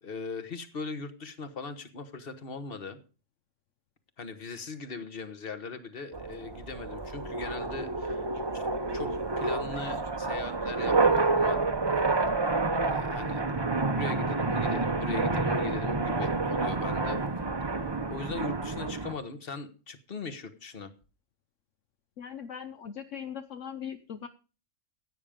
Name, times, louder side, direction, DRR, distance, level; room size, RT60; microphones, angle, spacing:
voice 1, 0.0-3.0 4.2-8.2 8.5-8.7 8.9-11.6 12.8-13.4 13.9-17.2 18.1-20.9, left 4 dB, 45° left, 10 dB, 1.5 m, -40 dB
sound 1, 6.1-19.1, right 3 dB, 20° right, 0.8 m, -29 dB
voice 2, 22.2-24.3, left 8 dB, 65° left, 8 dB, 1.1 m, -40 dB
15.5 x 8.9 x 5.1 m, 0.36 s
omnidirectional pair, 1.4 m